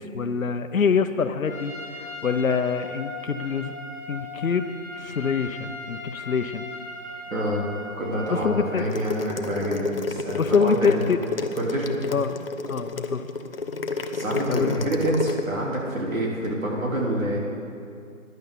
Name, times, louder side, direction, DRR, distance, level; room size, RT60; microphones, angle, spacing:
voice 1, 0.0-1.7 2.0-3.7 4.1-6.7 8.3-8.8 10.4-11.2 12.1-12.4 12.7-13.2 14.5-14.8, left 6 dB, 75° left, 10 dB, 0.9 m, -25 dB
Trumpet, 1.4-8.8, left 1 dB, 15° right, 0.8 m, -38 dB
voice 2, 7.3-7.7 8.0-11.0 11.6-12.0 14.1-17.4, right 1 dB, 75° right, -3 dB, 3.7 m, -27 dB
sound 1, 8.8-15.4, left 3 dB, 45° left, 0.6 m, -30 dB
16.0 x 10.5 x 4.0 m, 2.4 s
hypercardioid pair, 170°, 41 cm